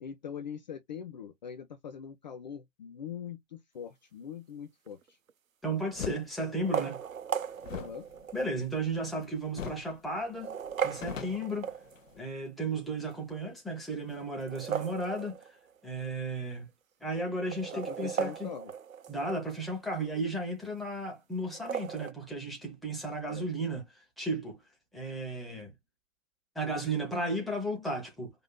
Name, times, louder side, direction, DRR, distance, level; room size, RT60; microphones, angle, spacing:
voice 1, 0.0-5.2 7.7-8.1 17.7-18.7 23.3-23.5, left 8 dB, 35° left, 0.5 m, -42 dB
sound 1, 4.9-5.3 6.5-8.6 9.2-9.3 10.2-12.2 14.3-15.8 16.1-16.2 16.4-16.5 17.3-19.6 21.5-22.1, right 7 dB, 75° right, 0.8 m, -37 dB
voice 2, 5.6-7.0 8.3-10.6 10.8-11.7 12.2-15.3 15.8-16.7 17.0-18.5 19.1-24.6 24.9-25.7 26.5-28.3, right 2 dB, ahead, 0.8 m, -34 dB
sound 2, 5.9-6.2 7.6-9.2 9.5-9.9 10.2-10.3 10.7-12.2, left 7 dB, 70° left, 0.8 m, -41 dB
5.2 x 2.7 x 2.2 m
figure-of-eight pair, 130°, 41 cm